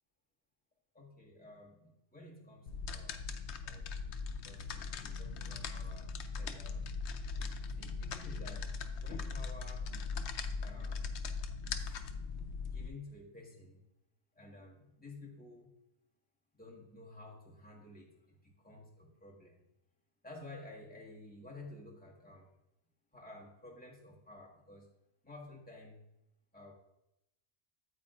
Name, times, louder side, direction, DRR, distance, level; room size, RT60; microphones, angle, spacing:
voice 1, 0.9-3.2 3.6-3.9 4.3-6.1 6.4-6.9 7.8-8.7 9.0-9.9 10.6-11.0 11.6-12.1 12.6-13.8 14.3-15.7 16.5-19.6 20.2-22.5 23.1-24.9 25.2-26.0 26.5-26.7, left 2 dB, 5° left, -3 dB, 1.6 m, -52 dB
sound 1, 2.7-12.9, left 4 dB, 70° left, 0.9 m, -40 dB
9.0 x 8.3 x 2.5 m, 0.87 s
omnidirectional pair, 1.3 m